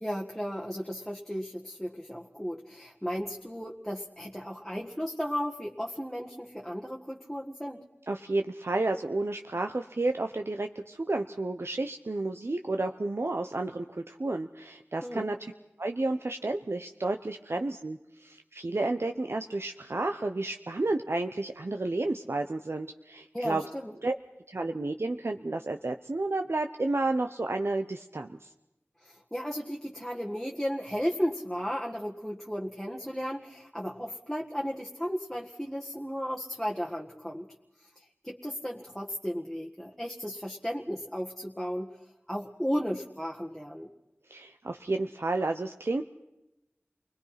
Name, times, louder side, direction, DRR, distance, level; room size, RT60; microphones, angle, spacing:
voice 1, 0.0-7.8 15.0-15.3 23.3-23.9 29.0-37.5 37.9-42.0 42.3-43.9, equal, 5° left, -1 dB, 1.7 m, -34 dB
voice 2, 8.1-15.4 15.8-23.6 24.0-24.1 24.5-28.5 44.3-46.0, right 2 dB, 65° right, 5 dB, 0.9 m, -31 dB
29.0 x 21.0 x 5.9 m, 0.92 s
wide cardioid pair, 45°, 5 cm